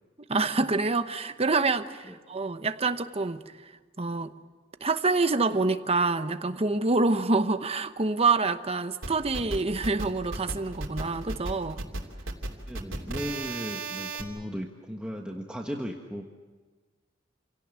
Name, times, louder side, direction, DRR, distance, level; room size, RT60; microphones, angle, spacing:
voice 1, 0.3-3.4 4.0-4.3 4.8-11.8, right 3 dB, 30° right, 10 dB, 1.0 m, -26 dB
sound 1, 9.0-14.2, right 2 dB, 80° right, 3.0 m, -35 dB
voice 2, 12.7-16.2, equal, 5° right, 1 dB, 1.3 m, -36 dB
28.0 x 17.5 x 9.0 m, 1.4 s
head